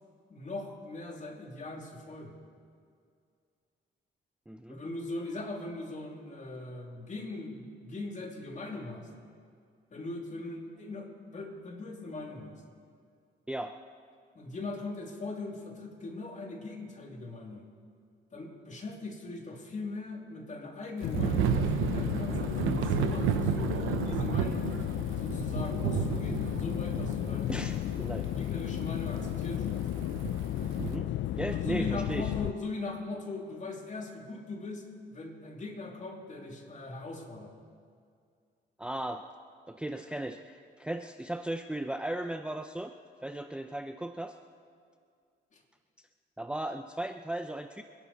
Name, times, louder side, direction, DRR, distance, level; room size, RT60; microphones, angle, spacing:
voice 1, 0.3-2.3 4.7-9.1 9.9-12.6 14.3-17.6 18.3-24.8 25.2-27.5 28.4-29.8 31.5-37.5 45.5-45.6, left 2 dB, 40° left, 1 dB, 2.8 m, -40 dB
voice 2, 4.5-4.8 13.5-13.8 27.5-28.3 30.8-31.1 31.4-32.3 38.8-39.2 39.7-42.9 43.2-44.4 46.4-47.8, right 1 dB, 5° right, 7 dB, 0.5 m, -36 dB
sound 1, 21.0-32.5, left 13 dB, 70° left, 0.5 m, -33 dB
Thunder / Rain, 21.1-31.0, right 10 dB, 90° right, 0.8 m, -33 dB
25.5 x 11.5 x 4.2 m, 2.3 s
cardioid pair, 90°, 20 cm